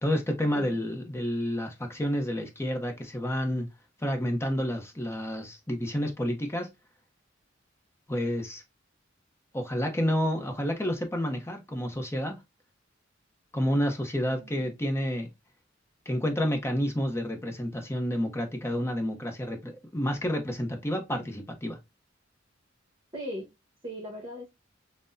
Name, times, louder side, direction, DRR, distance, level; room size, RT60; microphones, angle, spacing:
voice 1, 0.0-3.7 4.0-6.7 8.1-8.6 9.5-12.4 13.5-15.3 16.1-21.8, equal, 15° left, 0.8 m, -29 dB
voice 2, 14.3-14.7 23.1-23.5 23.8-24.5, equal, 25° right, 1.2 m, -39 dB
5.9 x 2.1 x 2.6 m
head